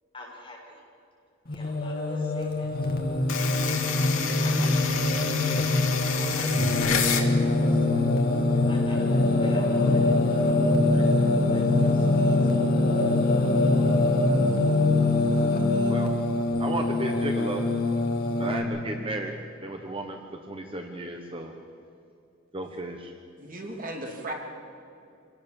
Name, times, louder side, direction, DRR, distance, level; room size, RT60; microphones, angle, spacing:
voice 1, 0.1-0.8 1.5-2.7 4.4-5.4 6.1-8.0 8.5-10.5 10.9-12.4 12.7-12.8, left 1 dB, 25° left, -4 dB, 6.6 m, -41 dB
Singing, 1.5-18.6, left 2 dB, 50° left, 2.4 m, -23 dB
sound 1, 3.3-7.3, left 7 dB, 85° left, 2.5 m, -29 dB
voice 2, 16.6-17.6 18.4-19.3 19.6-20.2 20.5-21.5 22.5-23.1, right 2 dB, 25° right, 4 dB, 1.2 m, -33 dB
voice 3, 23.4-24.3, right 1 dB, 40° right, 1 dB, 2.8 m, -36 dB
26.0 x 18.0 x 7.2 m, 2.6 s
head